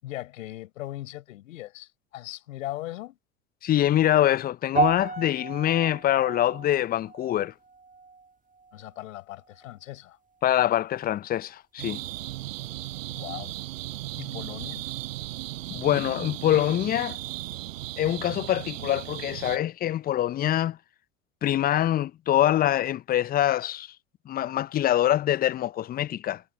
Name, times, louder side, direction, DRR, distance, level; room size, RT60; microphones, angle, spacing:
voice 1, 0.0-3.2 8.7-10.2 13.1-13.6 14.2-14.9, left 15 dB, 70° left, 5.9 m, -39 dB
voice 2, 3.6-7.5 10.4-12.0 15.7-17.2 18.0-20.8 21.4-23.9 24.3-26.4, left 12 dB, 25° left, 0.5 m, -24 dB
sound 1, 4.8-9.1 9.4-9.8 10.4-10.5, right 4 dB, 20° right, 2.1 m, -33 dB
sound 2, 11.8-19.6, right 16 dB, 70° right, 6.0 m, -36 dB
hypercardioid pair, 75°, 41 cm